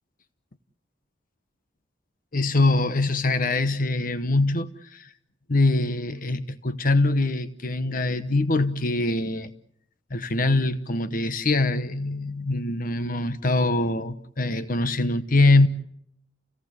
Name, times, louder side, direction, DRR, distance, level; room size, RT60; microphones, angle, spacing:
voice 1, 2.3-5.1 5.5-9.5 10.1-15.7, left 2 dB, 50° left, 1.0 m, -23 dB
29.5 x 18.0 x 8.1 m
head